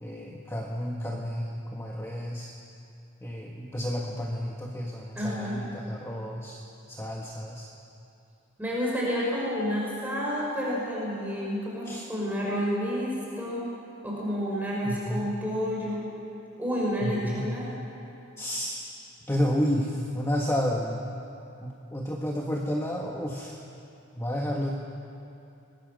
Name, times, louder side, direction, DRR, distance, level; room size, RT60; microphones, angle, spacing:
voice 1, 0.0-2.5 3.2-6.6 6.9-7.7 11.8-12.1 14.8-15.3 17.0-17.4 18.4-18.8 19.3-21.0 21.6-23.6 24.2-24.7, equal, 15° left, -1 dB, 1.6 m, -31 dB
voice 2, 5.2-5.6 8.6-13.7 14.0-16.1 16.6-17.7, equal, 10° right, -6 dB, 5.5 m, -30 dB
30.0 x 22.5 x 6.5 m, 2.9 s
head